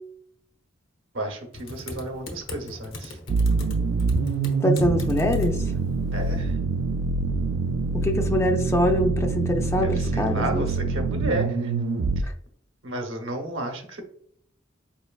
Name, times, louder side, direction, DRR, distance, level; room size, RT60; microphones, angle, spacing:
voice 1, 1.1-3.2 6.1-6.6 9.8-11.7 12.8-14.0, right 1 dB, 70° right, 4 dB, 0.9 m, -32 dB
Typing, 1.5-6.5, left 2 dB, 90° left, 0.9 m, -40 dB
sound 1, 3.3-12.2, right 4 dB, 90° right, 0.4 m, -25 dB
voice 2, 4.6-5.6 7.9-10.7, left 1 dB, 15° left, 4 dB, 0.4 m, -24 dB
4.5 x 3.2 x 2.3 m, 0.65 s
head